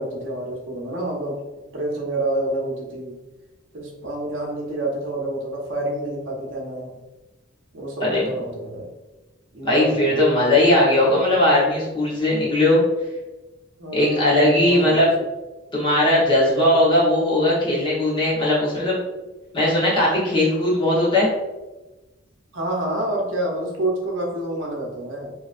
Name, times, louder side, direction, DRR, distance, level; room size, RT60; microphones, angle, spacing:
voice 1, 0.0-1.4 1.7-3.2 3.7-6.9 7.7-8.9 9.5-10.3 13.8-15.0 22.5-25.3, right 1 dB, 80° right, -1 dB, 0.8 m, -28 dB
voice 2, 9.6-12.8 13.9-15.1 15.7-19.0 19.5-21.3, left 1 dB, 25° left, -7 dB, 1.0 m, -18 dB
3.0 x 2.7 x 2.5 m, 1.1 s
head